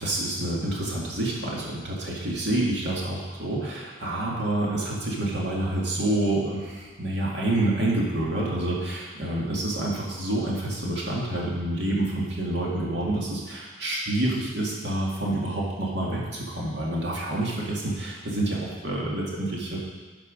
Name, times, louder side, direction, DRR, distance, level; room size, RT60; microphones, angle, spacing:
voice 1, 0.0-19.8, right 1 dB, 70° right, -4 dB, 2.1 m, -28 dB
11.5 x 4.8 x 5.1 m, 1.4 s
head